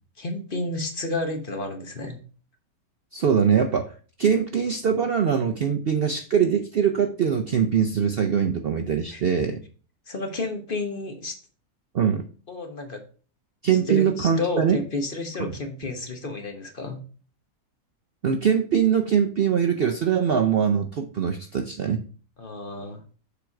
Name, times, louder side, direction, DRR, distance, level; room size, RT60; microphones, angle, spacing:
voice 1, 0.2-2.2 9.1-9.2 10.1-11.4 12.5-13.0 13.9-17.0 22.4-23.0, left 2 dB, 40° left, 4 dB, 1.2 m, -31 dB
voice 2, 3.1-3.9 4.2-9.6 11.9-12.2 13.6-14.8 15.4-15.5 18.2-22.0, right 7 dB, 55° right, 5 dB, 0.7 m, -22 dB
7.0 x 4.6 x 4.8 m, 0.39 s
omnidirectional pair, 1.5 m